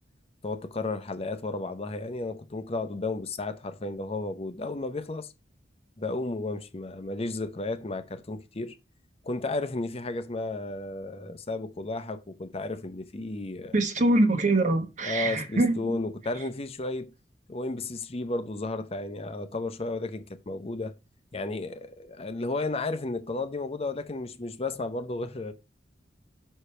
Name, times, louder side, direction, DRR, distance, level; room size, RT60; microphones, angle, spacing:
voice 1, 0.4-5.3 6.0-8.7 9.2-13.8 15.0-17.1 17.5-20.9 21.3-25.5, left 2 dB, 35° left, 0.7 m, -33 dB
voice 2, 13.7-15.8, right 2 dB, 45° right, 1.2 m, -23 dB
5.6 x 5.0 x 5.6 m
head